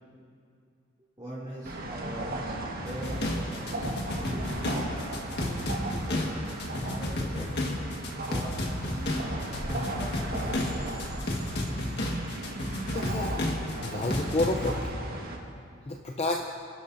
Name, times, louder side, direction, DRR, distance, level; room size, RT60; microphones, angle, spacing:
voice 1, 1.2-2.3 2.8-4.8 5.2-6.6 6.9-7.5 8.3-9.0 9.6-10.7, right 1 dB, 25° right, -10 dB, 2.6 m, -42 dB
sound 1, 1.6-15.4, right 1 dB, 50° right, 1.5 m, -36 dB
sound 2, 2.9-14.8, left 1 dB, 55° left, 1.6 m, -32 dB
voice 2, 12.9-14.8 15.9-16.4, left 2 dB, 30° left, 1 dB, 0.6 m, -30 dB
28.5 x 11.5 x 2.7 m, 2.4 s
head